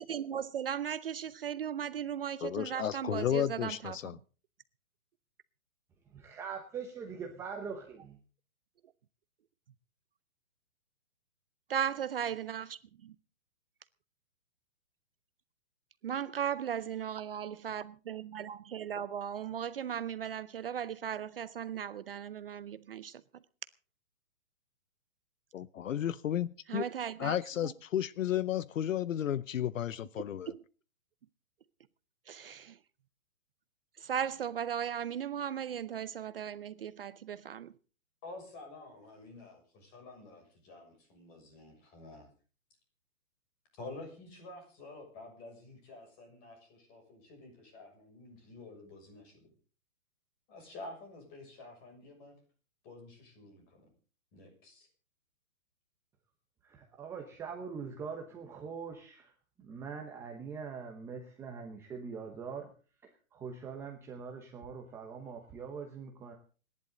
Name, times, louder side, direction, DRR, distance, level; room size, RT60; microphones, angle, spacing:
voice 1, 0.0-4.0 11.7-13.1 16.0-23.2 26.7-27.4 27.6-27.7 30.5-30.6 32.3-32.8 34.0-37.7, right 9 dB, 45° right, 0.6 m, -37 dB
voice 2, 2.4-4.2 25.5-26.8 27.2-30.5, left 10 dB, 70° left, 0.8 m, -33 dB
voice 3, 6.1-8.2 56.6-59.3 59.7-62.7 63.3-66.3, right 6 dB, 5° right, 0.9 m, -42 dB
voice 4, 38.2-42.3 43.8-49.4 50.5-52.3 52.8-53.9 54.3-54.9, left 2 dB, 20° left, 6.6 m, -50 dB
28.0 x 11.0 x 3.9 m
hypercardioid pair, 165°, 40 cm